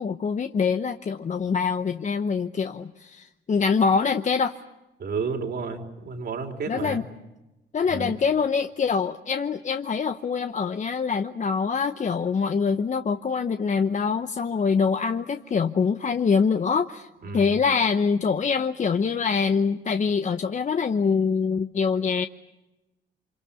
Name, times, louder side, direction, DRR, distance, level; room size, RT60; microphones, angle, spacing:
voice 1, 0.0-4.5 6.7-7.0 7.7-17.1 17.3-22.3, left 5 dB, 40° left, 8 dB, 0.9 m, -24 dB
voice 2, 5.0-7.0 7.8-8.2 17.2-17.6, right 4 dB, 55° right, 3 dB, 3.9 m, -31 dB
28.0 x 25.5 x 7.0 m, 1.0 s
cardioid pair, 90°, 20 cm